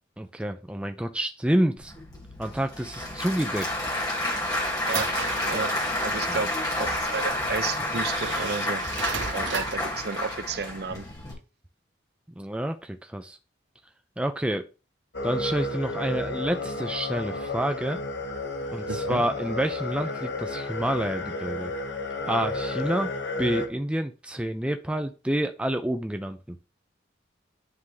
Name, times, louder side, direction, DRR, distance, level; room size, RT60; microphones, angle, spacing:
voice 1, 0.2-1.9 2.4-3.9 6.3-6.4 12.4-13.4 14.2-14.7 15.2-18.0 18.7-21.7 22.3-23.1 23.4-26.6, right 1 dB, 5° right, 0.4 m, -28 dB
Applause / Crowd, 1.8-11.3, left 1 dB, 20° left, 1.7 m, -30 dB
sound 1, 3.9-6.3 7.2-7.3 7.9-9.9, right 5 dB, 85° right, 1.0 m, -35 dB
voice 2, 6.0-6.5 6.8-8.8 9.3-11.0 18.9-19.2, right 4 dB, 55° right, 0.6 m, -32 dB
sound 2, 15.1-23.7, left 2 dB, 65° left, 1.1 m, -32 dB
9.7 x 3.5 x 3.1 m
head